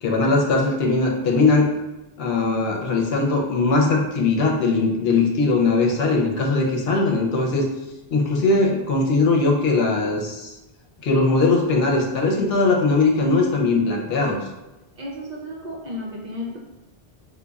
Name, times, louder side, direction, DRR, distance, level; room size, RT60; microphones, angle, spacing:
voice 1, 0.0-1.7 2.2-7.7 8.1-10.5 11.0-14.4, left 3 dB, 75° left, 0 dB, 0.8 m, -20 dB
voice 2, 15.0-16.6, left 1 dB, 55° right, -2 dB, 0.5 m, -33 dB
5.0 x 2.2 x 2.3 m, 0.98 s
omnidirectional pair, 1.1 m